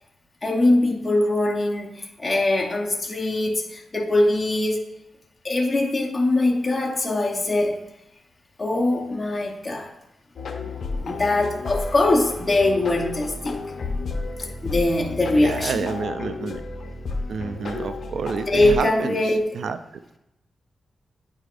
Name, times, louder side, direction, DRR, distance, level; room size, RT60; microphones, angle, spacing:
voice 1, 0.4-4.8 5.4-7.8 8.6-9.9 11.0-13.7 14.6-15.9 18.5-19.4, left 2 dB, 20° left, -2 dB, 0.9 m, -22 dB
sound 1, 10.4-18.8, left 3 dB, 65° left, 0.7 m, -32 dB
voice 2, 15.4-16.6 17.3-19.8, right 5 dB, 75° right, 11 dB, 0.3 m, -29 dB
9.0 x 4.8 x 2.5 m, 0.88 s
wide cardioid pair, 115°, 0 cm